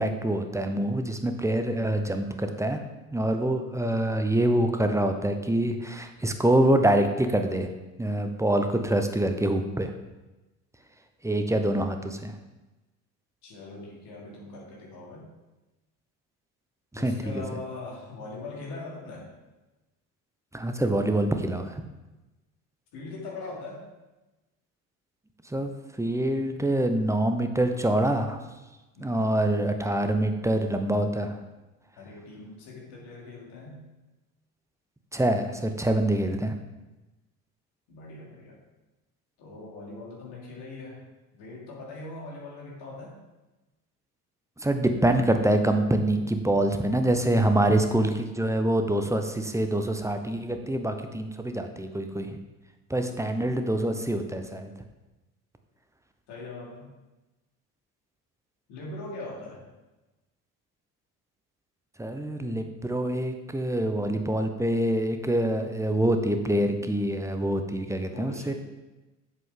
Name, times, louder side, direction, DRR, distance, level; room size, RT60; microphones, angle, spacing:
voice 1, 0.0-2.8 3.1-7.7 8.0-9.9 11.2-12.3 16.9-17.4 20.5-21.8 25.5-25.7 26.0-28.4 29.0-31.4 35.1-36.5 44.6-52.4 52.9-54.7 62.0-68.5, right 1 dB, 5° right, 6 dB, 0.8 m, -25 dB
voice 2, 13.4-15.3 16.9-19.3 22.9-23.9 28.9-29.3 32.0-33.8 37.9-38.6 39.4-41.0 41.3-43.1 52.9-53.0 56.3-56.9 58.7-59.6 68.1-68.5, left 2 dB, 60° left, -3 dB, 3.0 m, -41 dB
7.9 x 7.4 x 3.8 m, 1.1 s
figure-of-eight pair, 55°, 46 cm